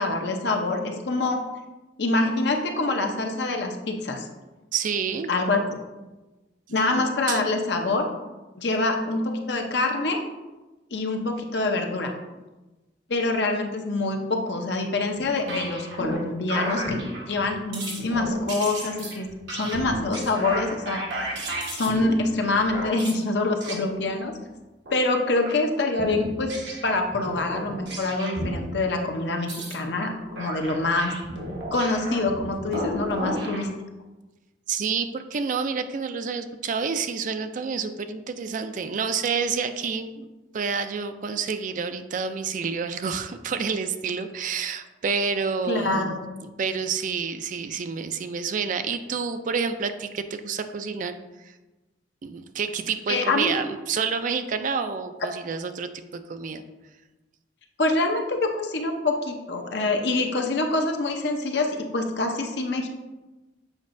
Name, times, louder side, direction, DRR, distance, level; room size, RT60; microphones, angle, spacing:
voice 1, 0.0-1.4 2.0-4.3 5.3-5.8 6.7-8.1 8.5-10.2 10.9-12.1 13.1-17.0 17.3-21.2 21.7-24.3 24.9-26.5 26.8-31.1 31.7-33.7 45.7-46.2 53.1-53.6 57.8-62.9, left 2 dB, 65° left, 3 dB, 0.7 m, -25 dB
voice 2, 4.7-5.3 6.7-7.4 34.7-40.3 40.5-46.2 46.6-51.2 51.4-51.5 52.2-56.6, right 5 dB, 45° right, 9 dB, 0.3 m, -29 dB
sound 1, 15.1-16.2 16.5-17.5 17.7-23.2 23.6-23.8 24.9-25.0 25.4-25.6 26.0-28.6 29.4-33.6, right 1 dB, 70° right, 1.3 m, -33 dB
7.3 x 5.1 x 2.6 m, 1.1 s
head